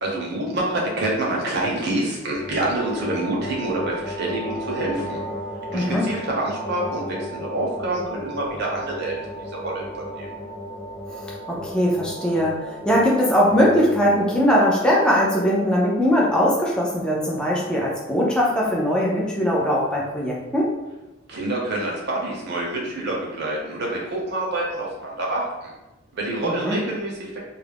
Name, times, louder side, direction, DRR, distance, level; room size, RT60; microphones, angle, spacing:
voice 1, 0.0-5.2 5.7-9.8 10.1-10.3 21.3-25.7 26.1-27.4, right 1 dB, 55° right, -2 dB, 0.7 m, -27 dB
sound 1, 2.3-14.6, equal, 45° left, 0.7 m, -34 dB
voice 2, 5.7-6.1 11.1-20.7 26.4-26.8, equal, 5° left, -5 dB, 0.4 m, -20 dB
2.3 x 2.0 x 3.3 m, 1.0 s
head